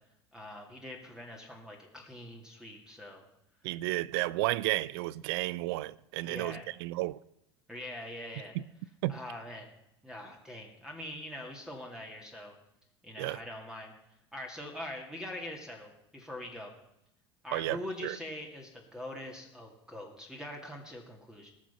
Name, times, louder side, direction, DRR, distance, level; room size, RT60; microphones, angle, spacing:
voice 1, 0.3-3.2 6.2-6.7 7.7-8.6 9.1-9.7 10.0-12.5 13.0-13.9 14.3-16.7 17.4-21.5, left 1 dB, 5° right, 2.4 m, -43 dB
voice 2, 3.6-7.2 8.5-8.6 9.0-9.1 13.2-13.4 17.5-18.2, right 18 dB, 65° right, 0.5 m, -32 dB
19.0 x 6.4 x 5.7 m
hypercardioid pair, 80°, 14 cm